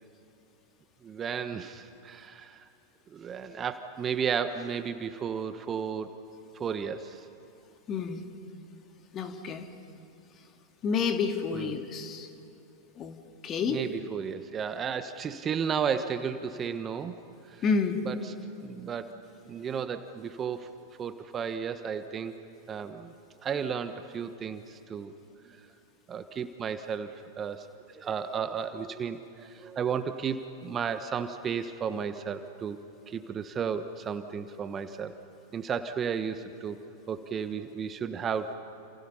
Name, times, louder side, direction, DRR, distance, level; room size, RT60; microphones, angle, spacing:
voice 1, 1.0-2.7 3.1-6.1 6.5-7.2 11.5-11.8 13.7-17.1 17.5-17.6 18.0-18.3 18.6-19.1 19.5-20.7 21.0-22.3 22.7-23.1 23.4-25.1 25.5-25.6 26.1-32.8 33.1-35.1 35.5-36.8 37.1-38.5, right 7 dB, 25° right, 10 dB, 1.2 m, -33 dB
voice 2, 7.9-8.3 9.1-9.7 10.8-12.3 13.0-13.2 13.4-13.8 17.6-18.0, left 5 dB, 30° left, 6 dB, 2.3 m, -29 dB
29.5 x 28.0 x 5.7 m, 2.8 s
figure-of-eight pair, 90°, 0 cm